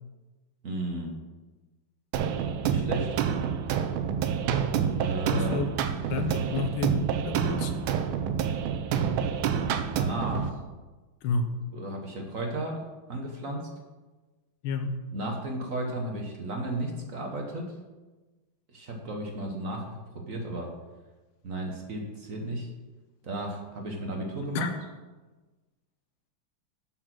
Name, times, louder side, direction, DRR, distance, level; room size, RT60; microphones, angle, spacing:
voice 1, 0.6-1.2 2.6-3.2 5.0-5.6 10.0-10.6 11.7-13.7 15.1-17.7 18.7-20.7 21.4-22.7 23.2-24.7, right 1 dB, 45° right, 2 dB, 1.3 m, -34 dB
sound 1, 2.1-10.5, right 7 dB, 80° right, 1.4 m, -28 dB
voice 2, 5.3-5.8 6.1-7.9 11.2-11.5 14.6-15.0 24.5-24.7, left 4 dB, 80° left, 7 dB, 1.7 m, -30 dB
7.8 x 6.4 x 6.0 m, 1.2 s
omnidirectional pair, 2.3 m